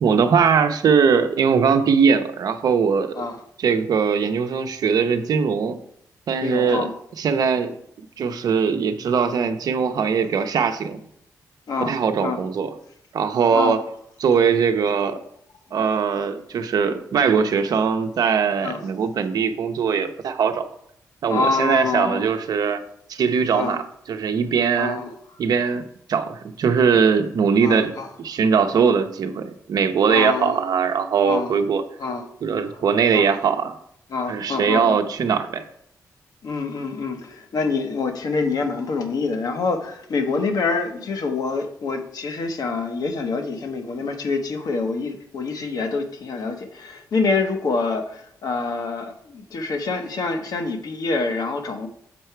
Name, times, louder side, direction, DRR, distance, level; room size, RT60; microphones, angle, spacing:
voice 1, 0.0-3.2 3.6-5.8 6.3-6.9 7.2-7.7 8.2-11.0 11.8-12.7 13.1-13.8 14.2-15.2 15.7-20.7 21.2-22.8 23.1-23.8 24.1-25.0 25.4-25.8 26.1-27.9 28.2-31.8 32.4-33.7 34.3-35.6, right 6 dB, 70° right, 0.8 m, -20 dB
voice 2, 6.4-6.9 11.7-12.4 13.5-13.8 18.6-18.8 21.3-22.3 23.5-23.8 24.7-25.1 27.6-28.1 30.1-30.6 31.2-31.5 32.0-32.3 32.7-32.8 33.1-33.3 34.1-35.0 36.4-51.9, left 4 dB, 65° left, 1.1 m, -26 dB
7.5 x 4.7 x 4.5 m
cardioid pair, 65°, 7 cm